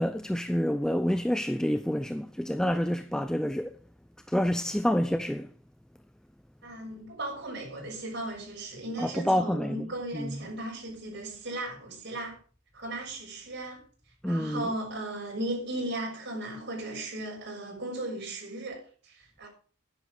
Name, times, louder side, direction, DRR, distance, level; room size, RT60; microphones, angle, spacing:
voice 1, 0.0-3.8 4.3-5.5 9.0-9.9 10.1-10.3 14.2-14.7, equal, 5° left, 0.4 m, -28 dB
voice 2, 6.6-12.4 12.7-13.9 14.2-19.5, right 1 dB, 55° right, 6.3 m, -36 dB
11.5 x 10.5 x 4.8 m
head